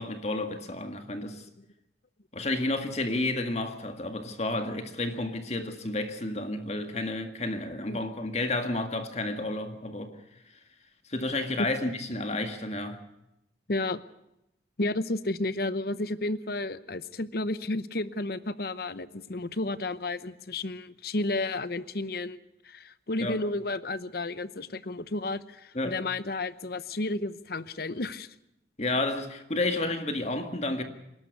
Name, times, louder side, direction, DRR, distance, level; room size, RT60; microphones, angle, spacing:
voice 1, 0.0-1.5 2.3-10.2 11.1-13.0 23.2-23.4 25.7-26.0 28.8-30.8, left 2 dB, 35° left, 1.9 m, -31 dB
voice 2, 13.7-14.0 14.8-28.3, left 2 dB, 55° left, 0.9 m, -32 dB
27.5 x 12.0 x 8.2 m
head